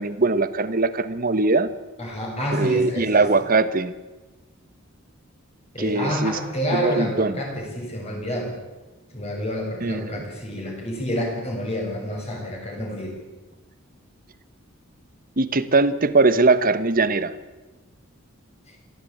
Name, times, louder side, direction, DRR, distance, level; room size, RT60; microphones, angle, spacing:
voice 1, 0.0-1.7 2.5-3.9 5.8-6.4 6.7-7.4 9.8-10.2 15.4-17.3, right 3 dB, 40° right, 13 dB, 1.2 m, -21 dB
voice 2, 2.0-3.3 5.7-8.5 9.1-13.2, equal, 30° left, 0 dB, 7.1 m, -28 dB
23.0 x 15.5 x 8.7 m, 1.2 s
head